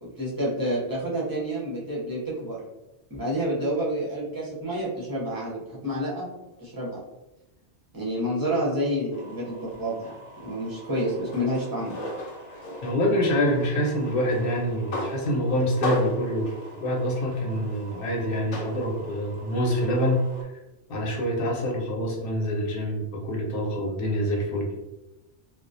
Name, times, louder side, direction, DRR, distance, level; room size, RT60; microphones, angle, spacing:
voice 1, 0.0-2.6 3.1-6.3 6.6-7.0 7.9-10.1 10.4-12.0, equal, 25° right, -6 dB, 0.6 m, -29 dB
sound 1, 9.1-20.4, left 1 dB, 90° left, 0.9 m, -37 dB
voice 2, 12.8-16.5 16.8-20.2 20.9-24.7, equal, 60° left, -1 dB, 0.8 m, -26 dB
2.3 x 2.1 x 2.6 m, 1.0 s
omnidirectional pair, 1.2 m